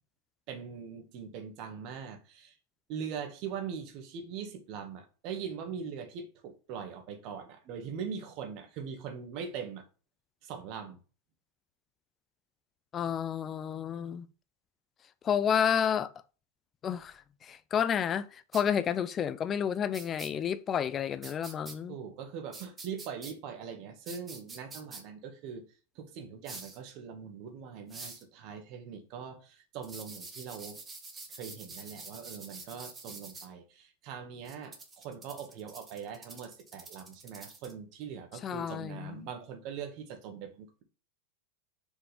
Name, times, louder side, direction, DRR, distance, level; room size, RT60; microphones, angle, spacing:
voice 1, 0.5-2.6 2.9-9.8 10.4-11.0 21.9-25.7 26.0-30.8 31.3-40.8, right 7 dB, 45° right, 1.9 m, -41 dB
voice 2, 12.9-14.3 15.2-16.1 16.8-22.0 38.4-39.3, left 8 dB, 30° left, 0.6 m, -30 dB
sound 1, 18.5-18.6 19.9-20.3 21.2-21.7 22.5-23.3 24.1-25.0 26.4-26.8 27.9-28.2 29.8-33.5 34.4-37.7, right 3 dB, 20° right, 2.0 m, -46 dB
6.0 x 5.6 x 5.2 m
figure-of-eight pair, 90°, 0 cm